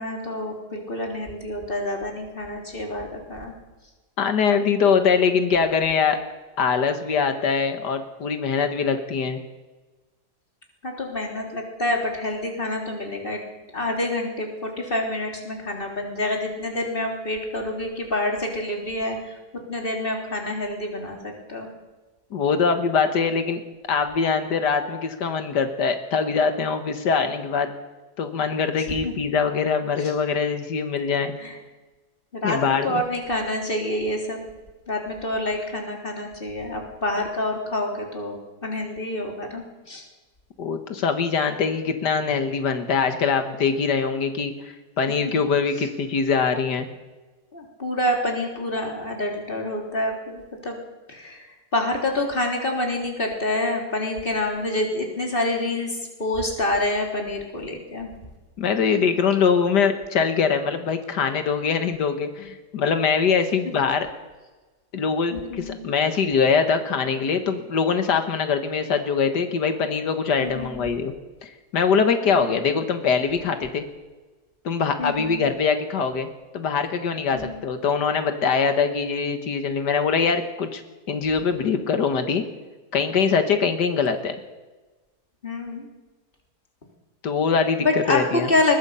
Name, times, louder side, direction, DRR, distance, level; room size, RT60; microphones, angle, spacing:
voice 1, 0.0-3.5 10.8-13.4 13.7-19.4 19.7-21.7 29.0-29.1 30.0-30.1 31.4-31.6 32.3-34.4 34.9-40.0 45.8-45.9 47.5-50.8 51.1-58.1 63.8-63.9 65.3-65.8 70.4-70.9 72.2-72.7 75.0-75.4 77.3-77.6 85.4-85.9 87.8-88.8, left 1 dB, 30° left, 1 dB, 3.7 m, -27 dB
voice 2, 4.2-6.2 6.6-9.4 22.3-23.6 23.9-27.7 28.2-31.3 32.4-33.0 40.6-46.9 58.6-64.1 64.9-71.1 71.4-73.8 74.7-76.3 76.5-80.8 81.1-82.5 82.9-84.4 87.2-88.5, left 5 dB, 90° left, 7 dB, 2.0 m, -23 dB
22.5 x 20.5 x 5.7 m, 1.2 s
omnidirectional pair, 1.7 m